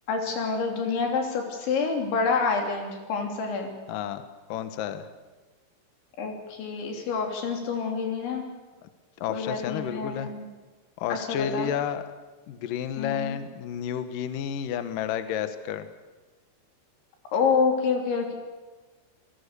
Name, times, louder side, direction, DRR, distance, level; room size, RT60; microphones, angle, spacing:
voice 1, 0.1-3.7 6.2-8.4 9.3-10.5 11.3-11.7 13.0-13.4 17.3-18.3, left 5 dB, 85° left, 2 dB, 5.6 m, -27 dB
voice 2, 3.9-5.1 8.8-8.9 9.2-10.3 11.0-12.1 12.5-15.9, left 9 dB, 65° left, 10 dB, 2.3 m, -31 dB
27.5 x 18.5 x 6.9 m, 1.3 s
omnidirectional pair, 5.2 m